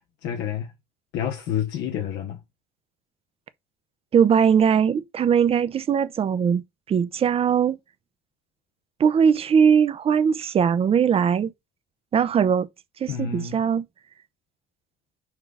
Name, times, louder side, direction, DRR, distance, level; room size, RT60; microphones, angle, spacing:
voice 1, 0.2-0.7 1.1-2.4 13.1-13.6, left 9 dB, 85° left, 0.8 m, -28 dB
voice 2, 4.1-6.6 6.9-7.8 9.0-11.5 12.1-12.7 13.0-13.8, right 7 dB, 35° right, 0.5 m, -20 dB
5.7 x 2.3 x 3.5 m
cardioid pair, 110°, 17 cm